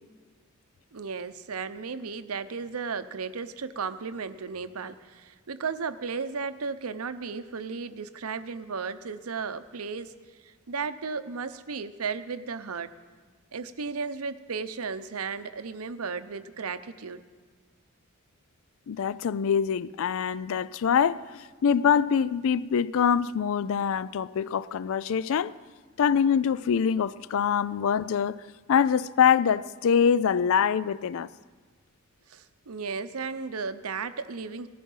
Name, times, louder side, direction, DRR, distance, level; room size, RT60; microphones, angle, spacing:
voice 1, 0.9-10.1 10.4-12.9 13.5-17.2 32.3-34.7, right 5 dB, 85° right, 0.8 m, -34 dB
voice 2, 18.9-25.5 26.0-28.4 28.7-31.3, left 7 dB, 65° left, 0.4 m, -24 dB
18.5 x 14.0 x 5.5 m
head